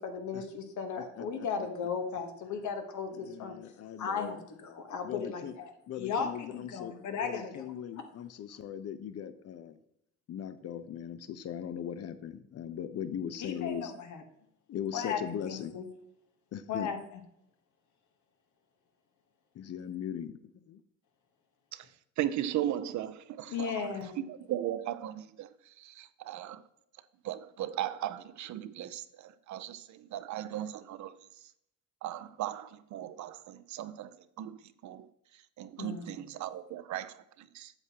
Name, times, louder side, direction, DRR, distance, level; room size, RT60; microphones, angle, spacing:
voice 1, 0.0-3.6 4.0-5.7 6.0-7.7 13.4-14.2 14.9-15.2 15.5-15.8 16.7-17.0 23.5-24.2 35.8-36.1, left 6 dB, 70° left, 1.2 m, -36 dB
voice 2, 1.0-1.5 3.1-4.4 5.0-5.6 5.9-9.8 10.3-13.9 14.7-15.8 16.5-16.9 19.5-20.4 20.7-20.8, left 9 dB, 55° left, 0.6 m, -39 dB
voice 3, 22.2-26.6 27.2-31.1 32.0-35.1 35.3-37.7, right 12 dB, 70° right, 0.6 m, -37 dB
7.9 x 7.4 x 2.9 m
cardioid pair, 90°, 30 cm